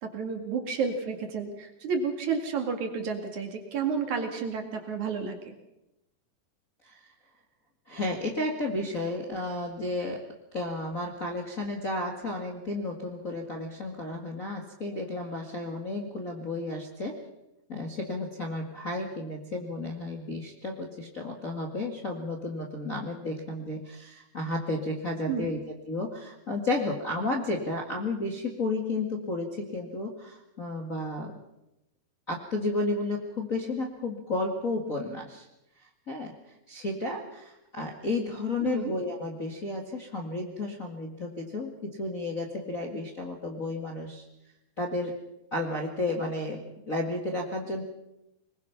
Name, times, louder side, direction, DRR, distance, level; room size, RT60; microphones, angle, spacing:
voice 1, 0.0-5.6 25.3-25.5 38.6-38.9, right 5 dB, 55° right, 4 dB, 3.3 m, -31 dB
voice 2, 7.9-10.3 10.5-17.2 17.7-25.6 25.9-31.3 32.3-35.5 35.8-44.2 44.8-45.2 45.5-47.8, left 2 dB, 35° left, 0 dB, 1.5 m, -32 dB
23.0 x 21.0 x 5.9 m, 0.90 s
omnidirectional pair, 4.2 m